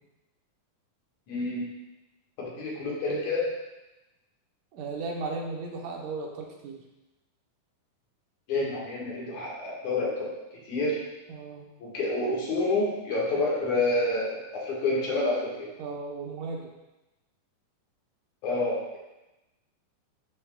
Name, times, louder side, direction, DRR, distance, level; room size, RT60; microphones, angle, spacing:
voice 1, 1.3-1.7 2.4-3.5 8.5-11.0 11.8-15.7 18.4-19.0, left 2 dB, 65° left, -4 dB, 2.9 m, -28 dB
voice 2, 4.7-6.8 11.3-11.7 15.8-16.7, right 3 dB, 75° right, 0 dB, 2.5 m, -35 dB
11.0 x 6.6 x 2.3 m, 0.99 s
omnidirectional pair, 3.8 m